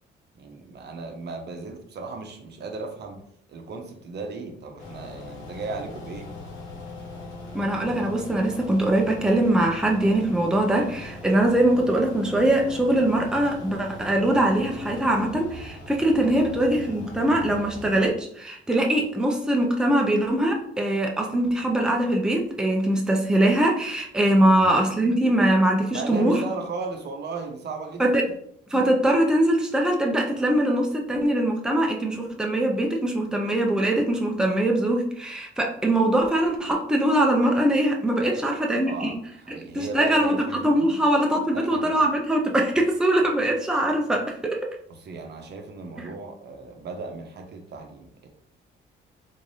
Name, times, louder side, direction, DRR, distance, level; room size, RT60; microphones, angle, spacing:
voice 1, 0.3-3.2 3.5-6.3 16.3-16.5 24.4-24.7 25.9-28.1 38.2-38.4 38.8-41.0 41.5-42.0 44.9-48.3, right 4 dB, 60° right, 3 dB, 0.7 m, -36 dB
sound 1, 4.8-18.1, left 1 dB, 90° left, 1.2 m, -40 dB
voice 2, 7.5-26.4 28.0-28.2 28.7-39.2 39.5-40.4 40.6-44.6, right 1 dB, 5° right, 0 dB, 0.6 m, -22 dB
3.7 x 3.1 x 2.7 m, 0.69 s
cardioid pair, 90°, 20 cm